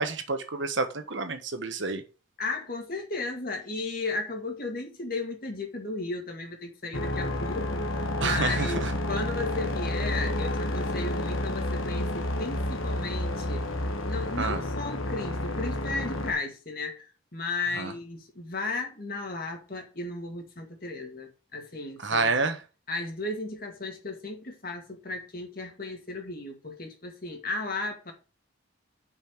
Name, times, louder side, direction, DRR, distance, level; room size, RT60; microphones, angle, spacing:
voice 1, 0.0-2.0 8.2-8.9 14.4-14.6 17.8-17.9 22.0-22.6, right 3 dB, 65° right, 1.3 m, -28 dB
voice 2, 2.4-13.6 14.0-17.1 17.3-22.4 22.9-28.1, left 3 dB, 45° left, 2.2 m, -35 dB
sound 1, 6.9-16.3, left 1 dB, 85° left, 1.5 m, -30 dB
5.9 x 5.6 x 6.5 m
head